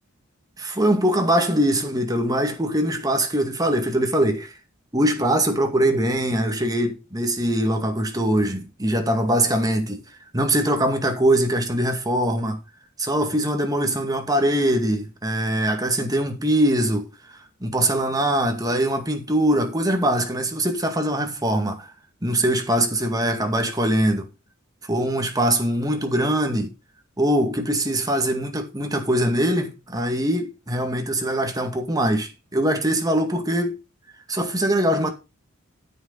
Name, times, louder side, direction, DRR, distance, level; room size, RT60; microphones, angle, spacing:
voice 1, 0.6-4.5 4.9-10.0 10.3-12.6 13.0-17.1 17.6-21.9 22.2-24.3 24.9-26.7 27.2-33.8 34.3-35.1, right 1 dB, 20° right, 2.1 m, -22 dB
9.5 x 8.4 x 4.0 m
head